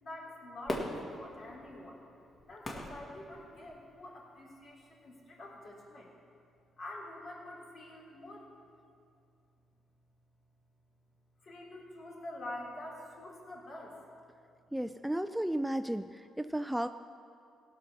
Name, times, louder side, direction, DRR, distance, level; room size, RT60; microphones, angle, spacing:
voice 1, 0.0-2.0 2.4-6.1 6.8-8.5 11.4-14.0, left 1 dB, 55° left, -3 dB, 3.2 m, -46 dB
Fireworks, 0.7-4.0 4.6-4.7, left 1 dB, 35° left, 1.8 m, -41 dB
voice 2, 14.7-16.9, right 1 dB, 5° right, 10 dB, 0.3 m, -34 dB
17.0 x 6.1 x 6.0 m, 2.4 s
cardioid pair, 90°, 0 cm